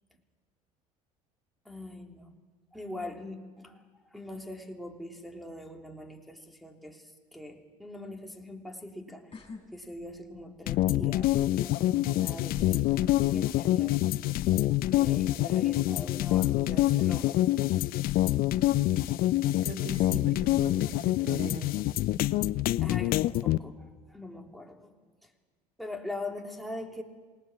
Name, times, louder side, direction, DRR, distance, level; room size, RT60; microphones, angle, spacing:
voice 1, 1.6-2.4 2.7-9.4 9.7-14.0 14.9-17.4 19.8-19.9 22.8-24.9 25.2-25.3 25.8-27.0, left 1 dB, ahead, 1 dB, 3.4 m, -42 dB
sound 1, 9.3-9.6 10.0-10.6 11.6-11.7 12.5-13.9 14.2-14.6, left 3 dB, 30° left, 6.5 m, -43 dB
sound 2, 10.7-23.6, left 15 dB, 50° left, 0.6 m, -26 dB
voice 2, 19.6-21.6, right 1 dB, 50° right, 4 dB, 3.3 m, -39 dB
27.0 x 19.0 x 7.3 m, 1.4 s
hypercardioid pair, 65°, 19 cm